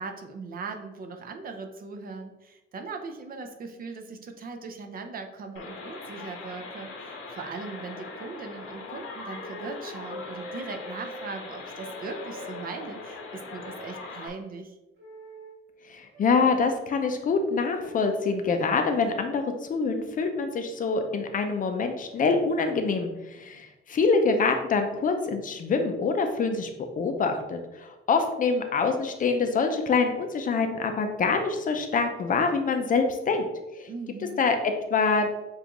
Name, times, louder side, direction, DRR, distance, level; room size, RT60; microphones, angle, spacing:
voice 1, 0.0-14.7 33.9-34.4, right 4 dB, 45° right, 5 dB, 0.5 m, -39 dB
sound 1, 5.6-14.3, left 3 dB, 85° left, 1.1 m, -41 dB
sound 2, 10.1-11.2 11.7-13.4 15.0-15.6 16.1-16.7 17.6-18.1 19.0-19.3, equal, 65° right, 1.2 m, -45 dB
voice 2, 15.9-19.4 19.7-26.7 27.0-33.5 33.7-33.9 34.4-35.3, left 4 dB, 40° left, 5 dB, 0.5 m, -25 dB
7.1 x 2.5 x 3.0 m, 1.0 s
cardioid pair, 150°, 21 cm